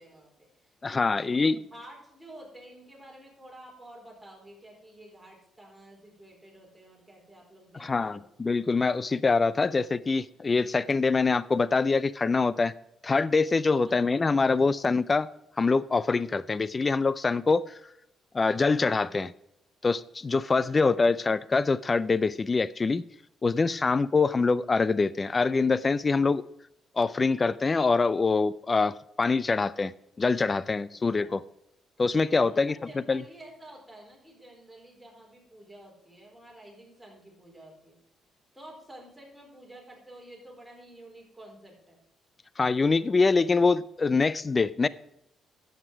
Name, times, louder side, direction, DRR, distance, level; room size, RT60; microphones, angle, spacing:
voice 1, 0.0-8.3 13.8-14.0 20.7-21.1 31.2-31.4 32.4-38.0 38.5-42.0, right 1 dB, 5° right, 4.3 m, -50 dB
voice 2, 0.8-1.6 7.8-12.7 13.0-15.3 15.6-17.8 18.3-19.3 19.8-23.0 23.4-26.5 27.0-29.9 30.2-31.4 32.0-32.8 33.1-33.2 42.6-44.9, left 4 dB, 25° left, 0.4 m, -24 dB
11.0 x 8.0 x 4.6 m
cardioid pair, 105°, 0 cm